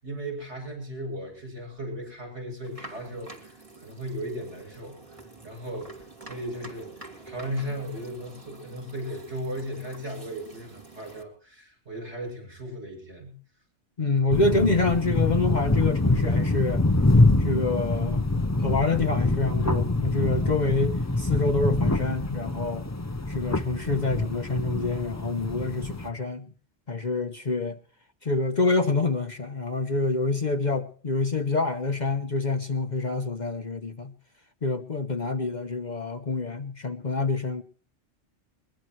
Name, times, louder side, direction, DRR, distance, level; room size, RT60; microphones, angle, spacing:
voice 1, 0.0-13.4, equal, 60° right, 8.4 m, -36 dB
sound 1, 2.6-11.2, right 3 dB, 25° right, 2.5 m, -47 dB
voice 2, 14.0-16.8 17.4-22.9 23.3-26.5 26.9-27.8 28.2-34.1 34.6-37.6, left 3 dB, 40° left, 0.9 m, -27 dB
sound 2, 14.3-26.1, left 2 dB, 15° left, 0.7 m, -25 dB
21.5 x 20.5 x 3.2 m
omnidirectional pair, 1.3 m